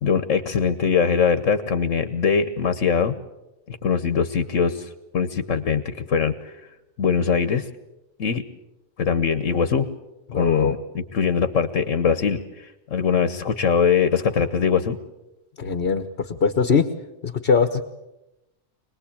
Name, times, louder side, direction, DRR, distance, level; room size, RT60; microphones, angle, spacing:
voice 1, 0.0-3.1 3.7-6.7 7.0-7.7 8.2-8.4 9.0-9.9 10.3-15.0, left 6 dB, 75° left, 11 dB, 1.5 m, -22 dB
voice 2, 10.3-10.8 15.6-16.9 17.2-17.8, left 5 dB, 50° left, 9 dB, 1.4 m, -21 dB
25.5 x 20.0 x 8.7 m, 0.93 s
omnidirectional pair, 1.3 m